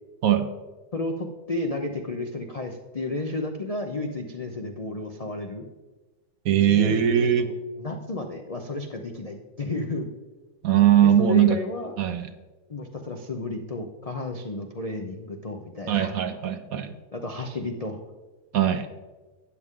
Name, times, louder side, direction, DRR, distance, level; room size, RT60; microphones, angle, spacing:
voice 1, 0.9-5.6 6.6-10.1 11.0-11.9 12.7-16.1 17.1-18.0, left 2 dB, 55° left, 4 dB, 0.4 m, -32 dB
voice 2, 6.5-7.4 10.6-11.6 12.0-12.3 15.9-16.9 18.5-18.9, right 10 dB, 65° right, 9 dB, 1.1 m, -20 dB
12.5 x 9.5 x 3.7 m, 1.2 s
omnidirectional pair, 1.8 m